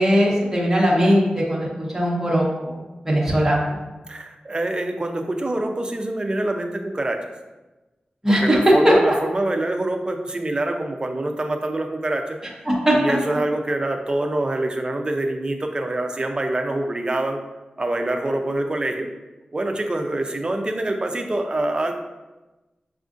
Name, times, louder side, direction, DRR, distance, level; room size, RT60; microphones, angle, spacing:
voice 1, 0.0-2.8 3.0-3.8 8.2-8.7 12.7-13.0, equal, 15° right, -6 dB, 1.0 m, -19 dB
voice 2, 4.1-7.2 8.3-12.4 12.9-17.4 17.8-19.1 19.5-21.9, right 1 dB, 30° right, 3 dB, 0.4 m, -25 dB
6.1 x 2.4 x 2.5 m, 1.1 s
wide cardioid pair, 70°, 3 cm